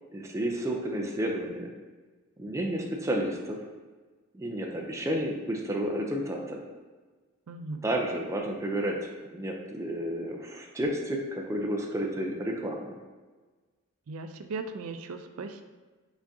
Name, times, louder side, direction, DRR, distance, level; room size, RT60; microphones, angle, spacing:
voice 1, 0.1-1.7 2.4-3.6 4.3-6.6 7.8-13.0, right 1 dB, 15° right, 0 dB, 0.4 m, -31 dB
voice 2, 7.5-7.8 14.1-15.6, right 3 dB, 90° right, 7 dB, 0.4 m, -37 dB
5.1 x 3.6 x 2.6 m, 1.3 s
head